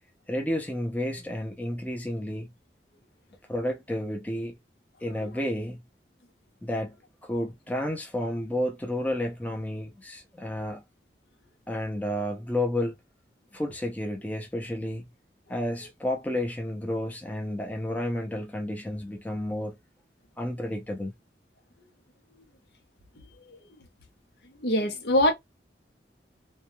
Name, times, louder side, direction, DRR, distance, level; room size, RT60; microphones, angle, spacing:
voice 1, 0.3-2.5 3.5-4.5 5.0-5.8 6.6-7.0 7.2-10.8 11.7-12.9 13.5-15.0 15.5-19.8 20.4-21.1, left 1 dB, 10° left, 0.5 m, -31 dB
voice 2, 24.6-25.3, left 1 dB, 65° left, 0.7 m, -23 dB
2.3 x 2.2 x 3.0 m
head